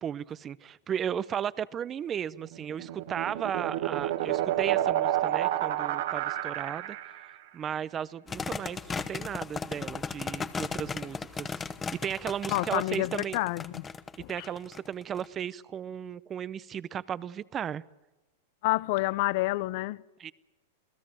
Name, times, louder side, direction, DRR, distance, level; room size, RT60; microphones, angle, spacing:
voice 1, 0.0-7.0 7.5-8.8 9.1-11.6 11.9-13.4 14.3-17.8 20.2-20.3, right 9 dB, 25° right, 0.8 m, -35 dB
sound 1, 2.5-7.3, right 12 dB, 65° right, 2.2 m, -29 dB
sound 2, 8.3-15.3, left 5 dB, 15° left, 0.9 m, -36 dB
voice 2, 12.5-13.8 14.2-14.5 18.6-20.0, left 20 dB, 55° left, 0.8 m, -29 dB
28.0 x 17.5 x 7.8 m
supercardioid pair, 140°, 0 cm